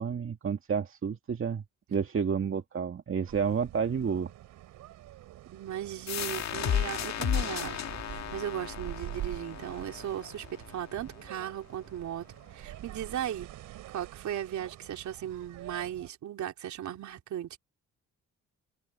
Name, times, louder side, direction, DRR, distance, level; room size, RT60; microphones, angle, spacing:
voice 1, 0.0-1.6 1.9-4.3, right 6 dB, 45° right, 2.1 m, -30 dB
sound 1, 3.3-16.1, right 14 dB, 85° right, 4.2 m, -46 dB
voice 2, 5.5-13.5 13.9-17.6, right 10 dB, 70° right, 3.6 m, -37 dB
sound 2, 6.1-11.5, left 9 dB, 65° left, 2.1 m, -34 dB
cardioid pair, 90°, 30 cm